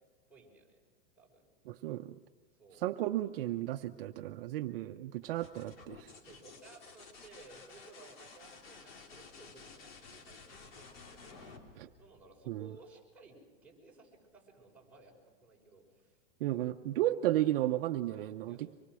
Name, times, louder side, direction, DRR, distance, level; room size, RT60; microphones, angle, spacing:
voice 1, 0.3-0.8 1.2-1.4 2.6-2.8 6.1-15.1 15.4-16.2 18.1-18.7, right 3 dB, 5° right, -4 dB, 5.8 m, -58 dB
voice 2, 1.7-2.2 2.8-6.1 11.8-11.9 12.5-12.6 16.4-18.7, right 14 dB, 70° right, 6 dB, 0.9 m, -33 dB
sound 1, 5.2-12.8 14.6-15.1, left 4 dB, 85° left, 3.4 m, -54 dB
25.0 x 21.5 x 6.3 m, 1.4 s
supercardioid pair, 145°, 29 cm